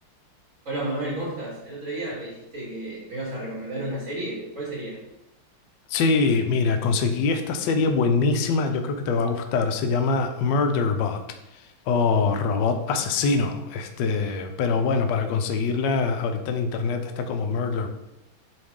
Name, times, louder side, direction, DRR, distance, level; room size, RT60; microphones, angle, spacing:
voice 1, 0.7-5.0 7.0-7.1, right 1 dB, 40° right, -5 dB, 2.3 m, -32 dB
voice 2, 5.9-11.2 11.9-17.9, left 4 dB, 70° left, 6 dB, 1.1 m, -23 dB
8.0 x 3.2 x 3.6 m, 0.89 s
omnidirectional pair, 2.3 m